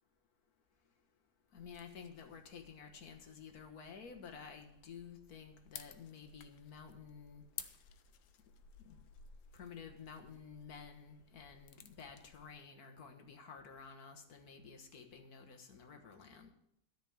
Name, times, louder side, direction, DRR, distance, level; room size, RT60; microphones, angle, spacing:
sound 1, 1.5-12.5, left 8 dB, 90° left, 1.3 m, -56 dB
voice 1, 1.5-7.4 8.8-9.0 9.5-16.5, left 6 dB, 70° left, 5 dB, 1.8 m, -52 dB
13.0 x 5.1 x 8.6 m, 0.75 s
omnidirectional pair, 1.7 m